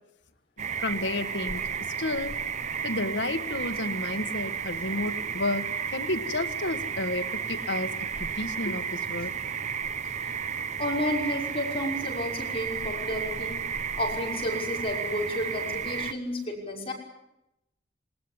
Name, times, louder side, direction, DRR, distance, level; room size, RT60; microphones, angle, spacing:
voice 1, 0.6-2.4 2.8-5.7 5.9-9.4, left 2 dB, 75° left, 8 dB, 1.6 m, -31 dB
sound 1, 0.6-16.1, right 7 dB, 40° right, 0.8 m, -33 dB
voice 2, 10.8-13.6 14.0-16.9, left 1 dB, 30° left, -1 dB, 5.9 m, -31 dB
20.0 x 19.0 x 9.9 m, 0.88 s
head